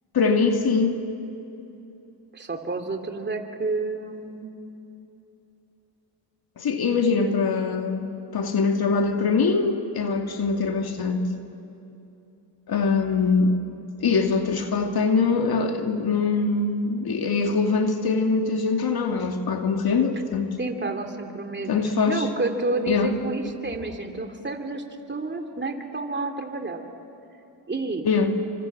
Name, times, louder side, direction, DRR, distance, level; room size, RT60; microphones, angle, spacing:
voice 1, 0.1-1.0 6.6-11.3 12.7-13.5 14.0-20.6 21.7-22.3 22.9-23.2 28.0-28.3, left 4 dB, 50° left, 4 dB, 2.4 m, -23 dB
voice 2, 2.3-4.5 20.6-21.8 22.1-24.8 25.1-26.8 27.7-28.1, right 2 dB, 25° right, 4 dB, 3.1 m, -30 dB
27.0 x 25.5 x 7.6 m, 2.9 s
supercardioid pair, 60°, 46 cm